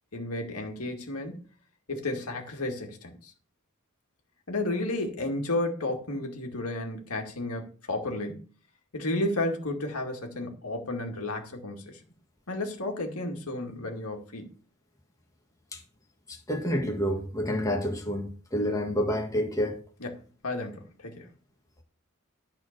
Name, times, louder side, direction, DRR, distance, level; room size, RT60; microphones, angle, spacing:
voice 1, 0.1-1.4 1.9-3.3 4.5-8.4 8.9-12.0 12.5-14.5 20.0-21.3, left 2 dB, 80° left, 2.1 m, -32 dB
voice 2, 16.3-19.8, equal, 15° left, 1.7 m, -29 dB
12.0 x 4.4 x 6.6 m
head